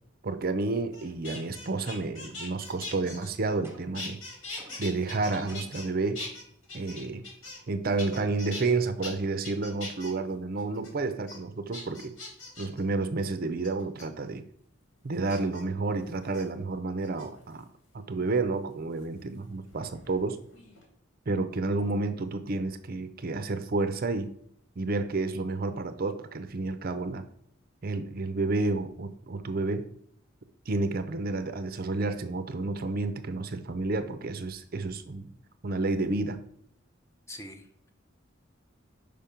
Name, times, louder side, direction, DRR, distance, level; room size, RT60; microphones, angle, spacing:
voice 1, 0.2-4.2 4.8-6.2 6.7-7.2 7.7-12.1 12.6-14.4 15.0-17.7 17.9-20.4 21.3-24.3 24.8-27.2 27.8-29.9 30.7-35.3 35.6-36.4, right 3 dB, 50° right, 10 dB, 0.5 m, -30 dB
sound 1, 0.9-3.7 3.9-5.9 6.1-7.7 8.0-8.6 9.0-9.1 9.4-10.1 10.6-10.9 11.3-11.4 11.7-12.8 13.6-14.0 15.3-15.6 16.2-16.4 17.0-17.6 19.0-20.2 20.5-20.9, left 2 dB, 80° left, 2.7 m, -41 dB
sound 2, 3.6-4.1 4.6-5.0 5.5-5.9, right 1 dB, 10° right, 1.0 m, -51 dB
voice 2, 37.3-37.9, left 1 dB, 15° left, 5 dB, 0.7 m, -44 dB
5.2 x 5.2 x 5.7 m, 0.68 s
head